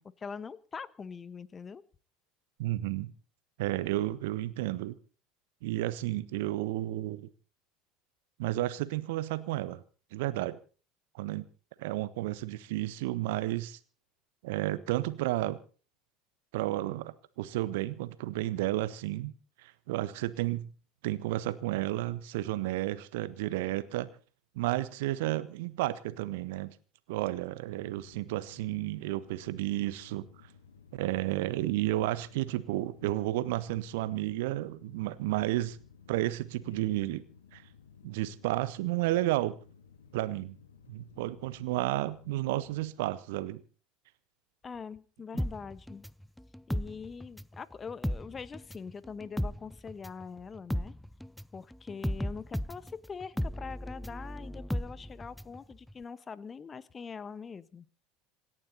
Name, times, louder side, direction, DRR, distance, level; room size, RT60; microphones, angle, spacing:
voice 1, 0.0-1.8 44.6-46.1 46.7-50.9 51.5-57.9, left 5 dB, 25° left, 1.3 m, -43 dB
voice 2, 2.6-3.1 3.6-4.9 5.6-7.3 8.4-9.8 10.1-10.6 11.1-11.4 11.8-13.8 14.4-15.6 16.5-19.3 19.6-20.7 21.0-24.1 24.5-26.7 27.1-30.3 30.9-35.8 36.1-37.2 37.5-37.6 38.0-39.6 40.1-40.6 40.9-43.6, right 16 dB, 65° right, 1.4 m, -32 dB
sound 1, 27.7-42.9, left 6 dB, 75° left, 2.5 m, -56 dB
sound 2, 45.4-47.6 47.9-55.6 55.9-56.0, equal, 5° left, 0.7 m, -35 dB
27.0 x 11.0 x 4.2 m
figure-of-eight pair, 70°, 0 cm